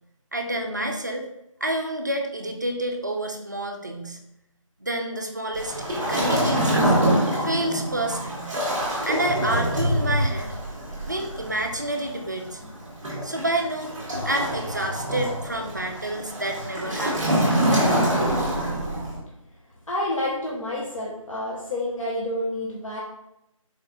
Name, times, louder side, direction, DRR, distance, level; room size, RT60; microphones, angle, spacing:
voice 1, 0.3-1.3 1.6-4.2 4.8-6.9 7.4-8.5 9.0-10.5 11.0-12.6 13.2-14.0 14.2-17.4, right 1 dB, 35° right, 3 dB, 0.4 m, -29 dB
Waves surf, 5.5-19.2, right 1 dB, 5° right, 0.7 m, -25 dB
voice 2, 19.9-23.0, left 1 dB, 65° left, -5 dB, 1.0 m, -29 dB
4.3 x 3.9 x 2.4 m, 0.85 s
figure-of-eight pair, 160°, 18 cm